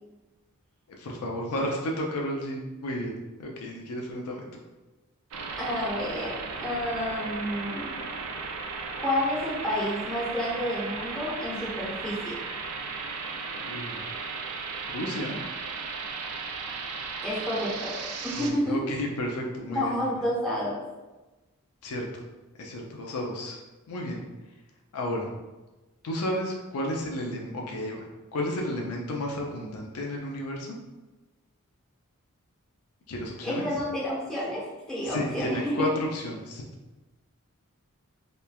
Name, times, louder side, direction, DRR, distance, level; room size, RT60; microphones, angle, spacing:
voice 1, 1.0-3.1 3.4-4.5 13.5-14.1 14.9-15.4 18.3-20.1 21.8-22.1 22.6-23.6 23.9-24.2 24.9-25.3 26.0-30.8 33.1-33.6 35.0-36.6, left 1 dB, 85° left, 0 dB, 0.4 m, -32 dB
sound 1, 5.3-18.5, right 4 dB, 75° right, 0.4 m, -36 dB
voice 2, 5.6-6.3 6.6-7.8 9.0-12.4 17.2-18.0 18.2-18.9 19.7-20.8 33.4-35.6, left 1 dB, 5° left, -9 dB, 0.8 m, -30 dB
3.0 x 2.1 x 2.2 m, 1.1 s
head